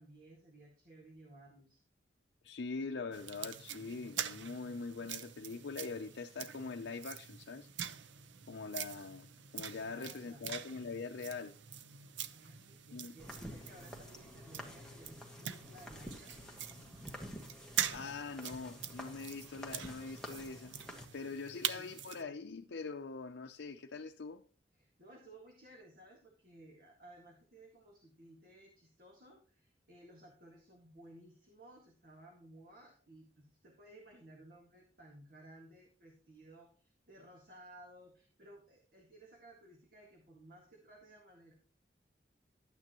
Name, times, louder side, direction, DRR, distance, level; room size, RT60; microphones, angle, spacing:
voice 1, 0.0-1.8 9.8-10.5 12.3-16.3 21.3-22.3 24.7-41.5, right 1 dB, 50° right, 1.9 m, -58 dB
voice 2, 2.4-7.7 8.5-9.3 9.5-11.5 12.9-13.1 17.9-20.7 21.1-24.4, left 4 dB, 85° left, 0.6 m, -43 dB
sound 1, 3.1-22.2, right 9 dB, 85° right, 0.7 m, -44 dB
sound 2, 13.2-21.1, left 1 dB, 5° left, 1.4 m, -50 dB
12.5 x 9.1 x 3.0 m
head